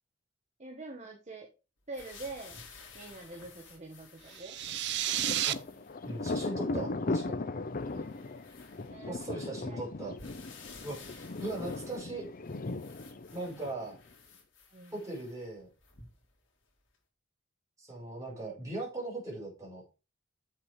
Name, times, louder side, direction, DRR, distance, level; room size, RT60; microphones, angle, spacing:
voice 1, 0.6-1.5 1.9-2.6 2.9-4.6 7.9-8.2 8.9-9.2 9.6-9.9 14.7-15.0, right 2 dB, 35° right, 2 dB, 1.3 m, -45 dB
sound 1, 1.9-6.5 7.1-7.2 7.7-9.3 10.2-16.4 16.9-17.0, left 4 dB, 60° left, 2.9 m, -54 dB
sound 2, 4.3-5.5, right 13 dB, 55° right, 0.5 m, -31 dB
Thunder, 4.6-14.1, left 2 dB, 40° left, 0.6 m, -38 dB
voice 2, 6.0-7.4 9.1-10.1 10.8-12.3 13.3-14.0 14.9-15.7 17.8-19.8, right 2 dB, 15° right, -4 dB, 5.6 m, -39 dB
7.6 x 6.7 x 4.8 m, 0.31 s
head